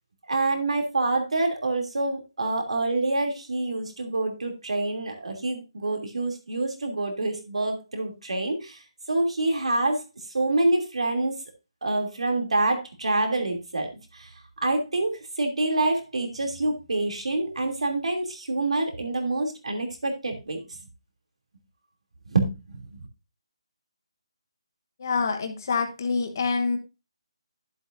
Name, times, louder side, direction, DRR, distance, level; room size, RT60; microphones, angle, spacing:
voice 1, 0.3-8.8 9.1-10.0 10.3-11.3 11.8-13.9 14.1-14.3 14.6-20.6 22.3-23.0, right 2 dB, 90° right, 3 dB, 2.9 m, -26 dB
voice 2, 25.0-26.8, left 4 dB, 35° left, 5 dB, 1.2 m, -26 dB
11.5 x 8.0 x 2.6 m, 0.27 s
hypercardioid pair, 180°, 3 cm